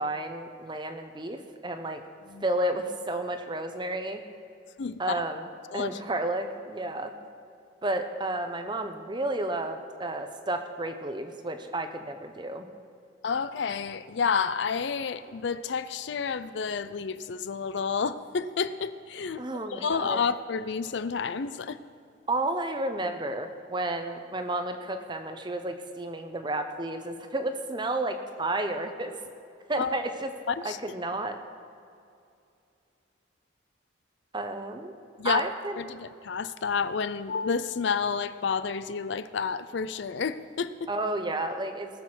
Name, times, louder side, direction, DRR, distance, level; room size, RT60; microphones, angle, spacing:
voice 1, 0.0-2.0 2.4-4.2 5.0-5.5 5.7-7.1 7.8-12.7 19.4-20.2 22.3-29.1 29.7-30.3 30.6-31.4 34.3-35.0 35.2-35.8 40.9-41.9, right 2 dB, 25° right, 7 dB, 0.8 m, -31 dB
voice 2, 4.8-5.2 5.7-6.0 13.2-19.4 19.7-21.8 29.8-30.0 30.5-30.8 35.2-35.5 35.8-40.9, left 5 dB, 65° left, 14 dB, 0.4 m, -30 dB
19.5 x 6.9 x 6.2 m, 2.5 s
head